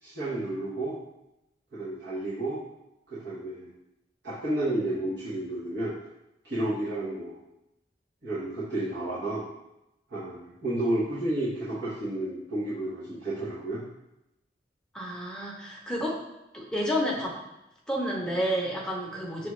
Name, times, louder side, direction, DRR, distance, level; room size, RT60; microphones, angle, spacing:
voice 1, 0.0-1.0 1.7-2.6 3.1-3.7 4.2-6.0 6.4-7.4 8.2-9.4 10.1-13.8, right 1 dB, 65° right, -11 dB, 1.1 m, -31 dB
voice 2, 14.9-16.2 16.5-17.3 17.9-19.5, equal, 5° left, -4 dB, 0.7 m, -30 dB
5.9 x 2.4 x 3.1 m, 0.89 s
head